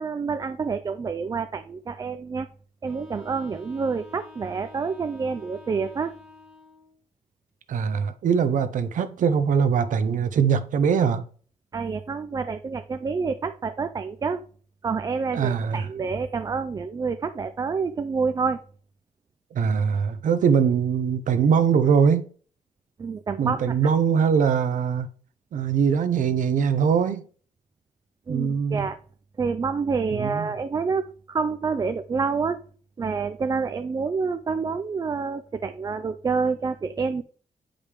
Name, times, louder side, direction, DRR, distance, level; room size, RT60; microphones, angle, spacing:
voice 1, 0.0-2.5 2.8-6.1 11.7-14.4 14.8-18.6 23.0-23.7 28.3-29.0 29.4-32.6 33.0-37.2, right 5 dB, 25° right, 0.4 m, -28 dB
Wind instrument woodwind instrument, 2.8-7.0, left 3 dB, 5° right, 1.5 m, -49 dB
voice 2, 7.7-11.2 15.3-15.9 19.5-22.3 23.4-25.1 25.5-27.3 28.3-28.9 30.1-30.5, right 6 dB, 70° right, 0.8 m, -22 dB
8.9 x 5.1 x 3.4 m
wide cardioid pair, 180°, 14 cm